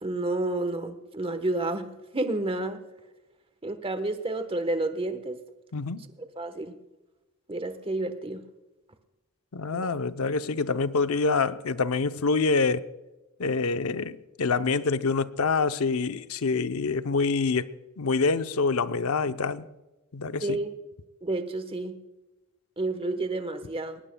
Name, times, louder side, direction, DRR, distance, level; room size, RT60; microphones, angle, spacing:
voice 1, 0.0-2.8 3.6-5.4 6.4-6.8 7.5-8.4 9.7-9.9 20.4-20.7 21.2-22.0 22.8-24.0, right 2 dB, 25° right, 1.1 m, -30 dB
voice 2, 5.7-6.1 9.5-12.8 13.4-17.7 18.0-19.6 20.1-20.6, left 4 dB, 75° left, 0.7 m, -26 dB
21.0 x 19.0 x 2.3 m
head